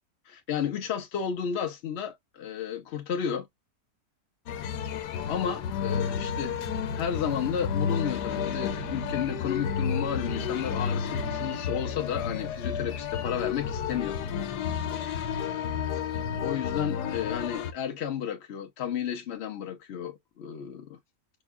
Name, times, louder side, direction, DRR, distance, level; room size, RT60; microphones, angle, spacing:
voice 1, 0.3-3.5 5.3-14.2 16.4-21.0, left 8 dB, 60° left, 0.7 m, -32 dB
sound 1, 4.5-17.7, left 8 dB, 85° left, 1.3 m, -31 dB
sound 2, 5.8-12.9, right 5 dB, 70° right, 1.3 m, -42 dB
5.2 x 2.3 x 2.4 m
omnidirectional pair, 1.7 m